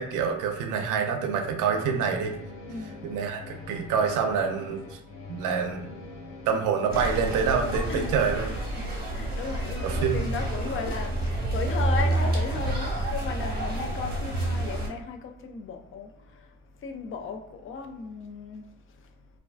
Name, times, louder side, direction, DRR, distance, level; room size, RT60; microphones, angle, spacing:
voice 1, 0.0-2.3 3.0-5.0 5.3-5.9 6.5-8.5 9.8-10.3, right 6 dB, 90° right, 0.5 m, -27 dB
sound 1, 1.6-8.4, left 3 dB, 85° left, 0.7 m, -43 dB
voice 2, 2.7-3.0 7.9-8.4 9.1-11.2 11.5-16.1 16.8-18.6, left 5 dB, 45° left, 0.4 m, -35 dB
sound 2, 6.9-14.9, right 1 dB, 30° right, 0.9 m, -29 dB
2.4 x 2.2 x 2.4 m
cardioid pair, 90°, 30 cm